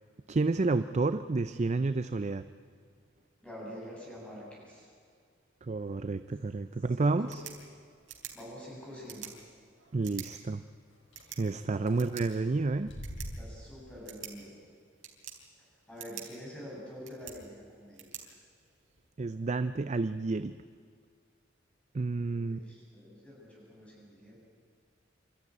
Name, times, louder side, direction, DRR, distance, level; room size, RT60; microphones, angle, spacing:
voice 1, 0.3-2.4 5.6-7.4 9.9-10.6 11.4-12.9 19.2-20.6 21.9-22.6, right 3 dB, 35° right, 12 dB, 0.5 m, -30 dB
voice 2, 3.4-4.9 7.0-7.4 8.3-9.3 11.8-12.0 13.3-14.6 15.9-18.3 22.0-24.4, equal, 5° left, -5 dB, 7.3 m, -47 dB
sound 1, 7.1-19.1, right 9 dB, 85° right, 3.6 m, -50 dB
sound 2, 7.6-7.7 8.2-8.3 8.6-8.7 9.0-9.1 11.1-11.2 11.6-11.9 12.5-13.9, equal, 80° left, 4.8 m, -44 dB
26.5 x 13.5 x 9.7 m, 2.2 s
head